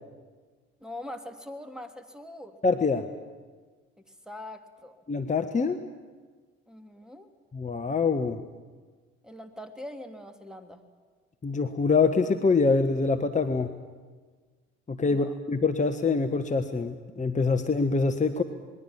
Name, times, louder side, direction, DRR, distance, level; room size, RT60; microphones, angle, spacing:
voice 1, 0.8-2.6 4.3-5.0 6.7-7.3 9.2-10.8 15.1-15.3, left 1 dB, ahead, 7 dB, 2.8 m, -42 dB
voice 2, 2.6-3.1 5.1-5.8 7.5-8.4 11.4-13.7 14.9-18.4, left 4 dB, 25° left, 8 dB, 1.4 m, -25 dB
27.5 x 21.5 x 7.5 m, 1.4 s
figure-of-eight pair, 50°, 32 cm